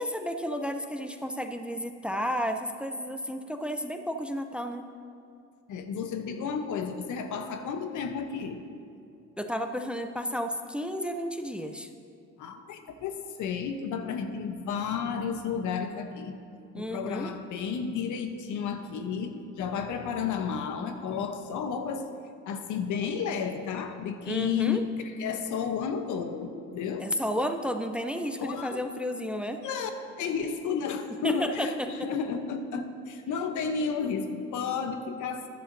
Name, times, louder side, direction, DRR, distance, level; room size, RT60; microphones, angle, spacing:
voice 1, 0.0-4.8 9.4-11.9 16.7-17.3 24.2-24.8 27.0-29.6 31.2-31.9, equal, 5° right, 6 dB, 0.5 m, -32 dB
voice 2, 5.7-8.6 12.4-16.4 16.7-22.1 22.4-27.1 28.4-28.8 29.6-29.9 30.2-35.5, left 6 dB, 80° left, 7 dB, 0.9 m, -32 dB
14.0 x 10.5 x 2.6 m, 2.5 s
cardioid pair, 90°, 30 cm